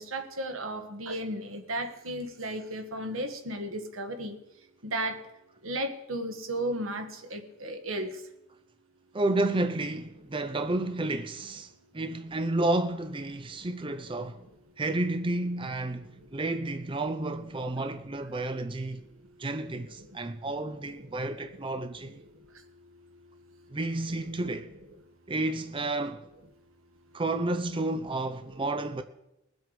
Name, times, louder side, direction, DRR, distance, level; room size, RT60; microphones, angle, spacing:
voice 1, 0.0-4.4 4.8-5.2 5.6-8.2 14.4-14.5 16.1-16.2 19.8-20.2 21.0-21.2 21.5-21.7 22.0-22.1 24.3-24.4, right 1 dB, 85° right, 1.6 m, -35 dB
voice 2, 9.1-14.4 14.8-19.0 19.4-22.2 23.7-24.7 25.3-26.2 27.1-29.0, right 2 dB, 25° right, 0.5 m, -31 dB
21.0 x 8.0 x 5.1 m
head